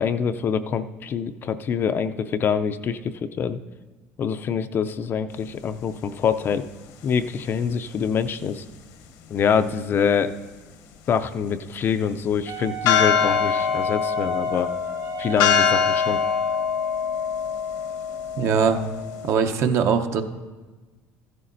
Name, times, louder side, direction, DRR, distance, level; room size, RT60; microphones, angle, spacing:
voice 1, 0.0-3.6 4.2-6.6 7.0-8.6 9.3-10.3 11.1-14.7 15.2-16.2, left 7 dB, 35° left, 10 dB, 0.4 m, -25 dB
Wind instrument woodwind instrument, 12.5-16.6, right 5 dB, 70° right, 1.3 m, -33 dB
sound 1, 12.9-19.3, left 7 dB, 75° left, 0.9 m, -24 dB
voice 2, 18.4-18.8 19.2-20.2, right 6 dB, 50° right, 8 dB, 0.7 m, -21 dB
14.0 x 11.0 x 2.6 m, 1.3 s
supercardioid pair, 115°, 6 cm